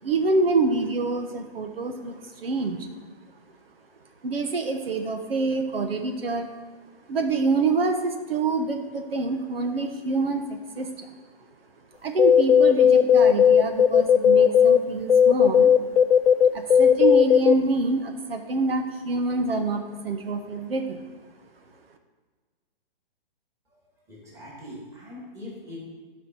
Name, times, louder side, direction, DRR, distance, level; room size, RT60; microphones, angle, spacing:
voice 1, 0.0-2.9 4.2-6.5 7.1-11.1 12.0-15.8 16.4-21.1, right 3 dB, 75° right, 5 dB, 1.3 m, -26 dB
sound 1, 12.2-14.8 15.1-17.5, left 8 dB, 85° left, 0.7 m, -16 dB
voice 2, 24.1-25.8, left 1 dB, 10° right, -5 dB, 2.4 m, -42 dB
12.5 x 5.1 x 6.1 m, 1.5 s
hypercardioid pair, 160°, 29 cm